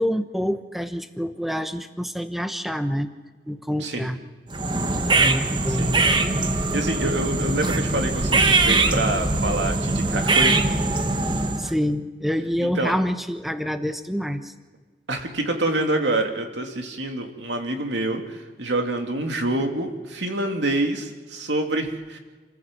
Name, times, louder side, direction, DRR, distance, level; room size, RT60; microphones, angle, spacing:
voice 1, 0.0-3.1 3.5-4.2 5.1-6.0 11.6-14.5, equal, ahead, 8 dB, 1.0 m, -27 dB
sound 1, 4.5-11.8, right 3 dB, 25° right, 1.2 m, -22 dB
voice 2, 5.8-6.1 6.5-10.6 12.6-12.9 15.1-22.2, right 2 dB, 85° right, 4 dB, 2.7 m, -27 dB
28.0 x 15.0 x 7.6 m, 1.4 s
head